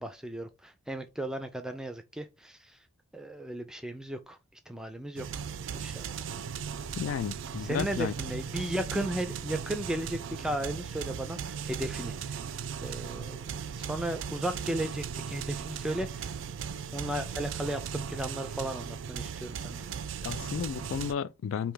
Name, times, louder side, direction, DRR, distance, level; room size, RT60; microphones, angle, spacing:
voice 1, 0.0-2.8 3.1-4.4 4.7-5.4 5.7-6.0 7.6-12.4 12.8-16.4 16.9-19.8, right 1 dB, 5° right, 0.4 m, -35 dB
sound 1, 5.2-21.1, right 7 dB, 70° right, 0.3 m, -37 dB
voice 2, 6.9-8.1 20.2-21.7, left 7 dB, 80° left, 0.3 m, -33 dB
3.3 x 2.7 x 3.7 m
head